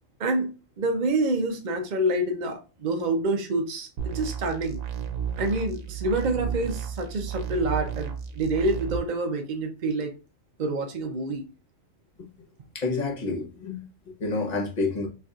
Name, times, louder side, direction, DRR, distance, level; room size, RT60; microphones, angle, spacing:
voice 1, 0.2-4.8 5.4-10.1 10.6-11.4, right 2 dB, 50° right, 4 dB, 0.5 m, -27 dB
sound 1, 4.0-9.0, right 8 dB, 85° right, 1.1 m, -33 dB
voice 2, 12.7-15.1, left 3 dB, 35° left, 1 dB, 0.9 m, -29 dB
3.9 x 3.3 x 2.3 m, 0.32 s
omnidirectional pair, 1.4 m